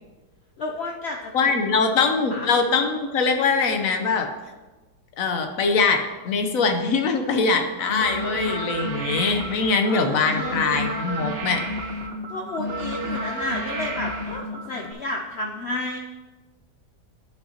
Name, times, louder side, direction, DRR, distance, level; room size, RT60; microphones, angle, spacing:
voice 1, 0.6-1.5 1.8-1.9 2.3-2.5 7.4-7.5 9.4-10.6 12.3-16.0, left 2 dB, 85° left, 1 dB, 0.5 m, -32 dB
voice 2, 1.3-4.3 5.2-11.6, left 4 dB, 60° left, 5 dB, 1.0 m, -22 dB
sound 1, 7.8-14.9, equal, 50° right, 0.7 m, -31 dB
11.5 x 5.7 x 2.8 m, 1.2 s
omnidirectional pair, 1.8 m